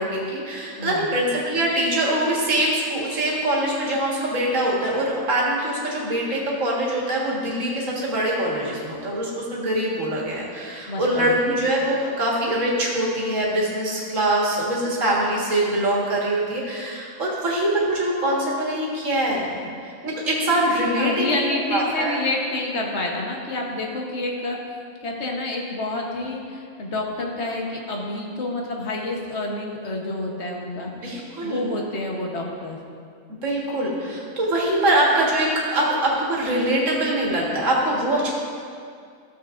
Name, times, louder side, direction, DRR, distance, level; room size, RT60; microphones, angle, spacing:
voice 1, 0.0-19.6 19.8-21.4 21.7-22.2 30.8-31.6 33.4-38.3, right 1 dB, 60° right, -5 dB, 2.0 m, -23 dB
voice 2, 0.8-1.1 10.9-11.4 21.0-24.6 25.0-30.9 31.4-32.8, left 2 dB, 50° left, 0 dB, 1.3 m, -28 dB
13.5 x 7.4 x 2.5 m, 2.3 s
omnidirectional pair, 1.5 m